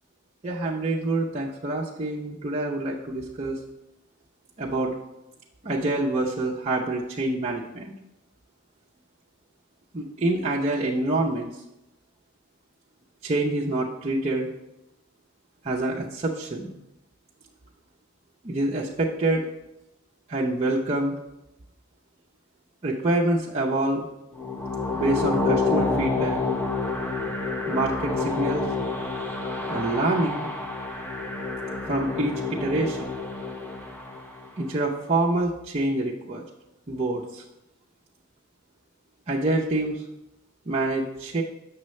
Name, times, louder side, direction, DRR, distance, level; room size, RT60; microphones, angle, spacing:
voice 1, 0.4-3.6 4.6-4.9 5.6-8.0 9.9-11.5 13.2-14.5 15.6-16.7 18.4-19.5 20.3-21.1 22.8-24.0 24.9-26.4 27.7-28.7 29.7-30.5 31.9-33.0 34.6-36.4 36.9-37.4 39.3-40.0 40.7-41.4, right 2 dB, 30° right, -5 dB, 0.6 m, -26 dB
sound 1, 24.3-34.5, left 3 dB, 10° left, 0.8 m, -28 dB
7.6 x 6.2 x 3.2 m, 0.90 s
head